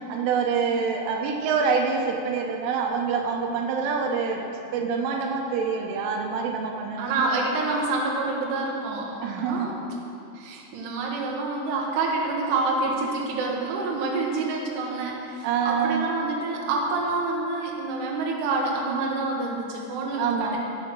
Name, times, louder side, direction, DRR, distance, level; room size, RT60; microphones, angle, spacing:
voice 1, 0.0-4.5 4.7-7.4 9.2-9.7 15.4-16.1 20.2-20.6, right 5 dB, 85° right, 2 dB, 3.4 m, -26 dB
voice 2, 7.0-9.8 10.3-20.6, right 3 dB, 70° right, -2 dB, 3.0 m, -27 dB
8.9 x 8.4 x 6.1 m, 2.7 s
omnidirectional pair, 5.5 m